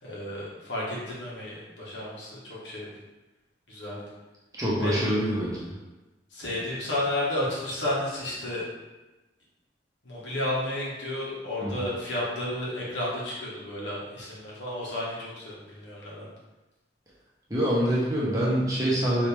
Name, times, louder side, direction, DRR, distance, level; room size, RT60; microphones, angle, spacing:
voice 1, 0.0-2.9 3.7-4.0 4.8-5.1 6.3-8.6 10.0-16.3, left 1 dB, 85° left, -6 dB, 1.5 m, -32 dB
voice 2, 4.6-5.7 11.6-11.8 17.5-19.3, equal, 20° right, -7 dB, 1.1 m, -25 dB
4.6 x 3.2 x 3.5 m, 1.1 s
head